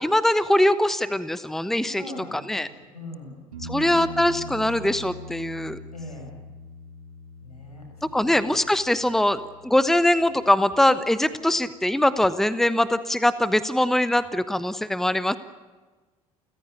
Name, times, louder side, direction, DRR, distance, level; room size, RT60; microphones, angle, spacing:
voice 1, 0.0-2.0 2.3-2.7 3.6-5.8 8.1-15.4, left 1 dB, ahead, 14 dB, 1.1 m, -22 dB
voice 2, 2.0-2.4 2.7-3.4 3.7-4.4 5.9-6.3 7.4-8.4, left 1 dB, 85° left, 2 dB, 6.1 m, -41 dB
sound 1, 3.5-11.1 14.2-14.3, left 1 dB, 80° right, 4.3 m, -42 dB
29.5 x 15.5 x 9.1 m, 1.3 s
figure-of-eight pair, 60°, 19 cm